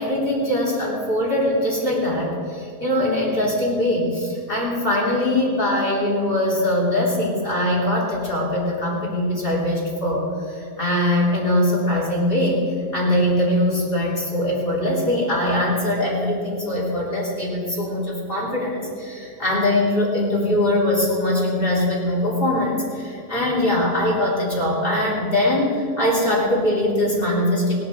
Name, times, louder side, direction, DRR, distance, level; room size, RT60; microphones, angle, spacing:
voice 1, 0.0-27.7, left 1 dB, 15° left, -4 dB, 2.3 m, -22 dB
17.0 x 12.5 x 5.0 m, 2.4 s
omnidirectional pair, 4.6 m